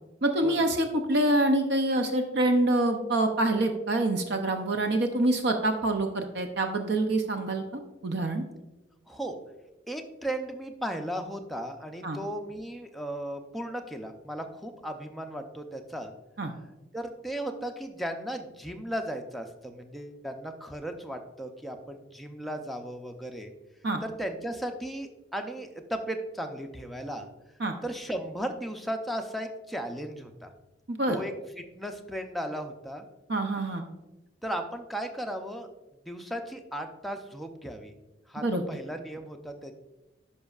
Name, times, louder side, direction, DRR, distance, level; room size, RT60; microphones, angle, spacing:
voice 1, 0.2-7.6 8.0-8.4 12.0-12.2 16.4-16.5 23.8-24.0 27.6-27.7 30.9-31.2 33.3-33.8 38.4-38.6, right 1 dB, 60° right, 5 dB, 0.6 m, -26 dB
voice 2, 9.1-9.4 9.9-16.1 16.9-23.5 24.0-27.3 27.8-30.5 31.1-33.1 34.4-35.7 36.1-37.9 38.3-39.8, right 1 dB, ahead, 3 dB, 0.5 m, -36 dB
10.5 x 5.3 x 2.4 m, 1.0 s
head